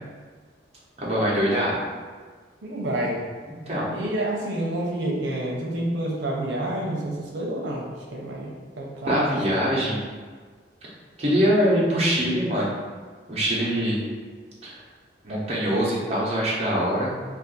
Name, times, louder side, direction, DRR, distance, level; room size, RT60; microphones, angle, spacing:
voice 1, 1.0-1.8 3.5-3.9 9.0-10.0 11.2-12.8 13.3-14.0 14.6-14.8 15.2-17.1, equal, 35° right, -6 dB, 0.7 m, -23 dB
voice 2, 2.6-3.2 3.9-9.3, right 1 dB, 90° right, -2 dB, 0.6 m, -28 dB
2.5 x 2.4 x 3.8 m, 1.5 s
head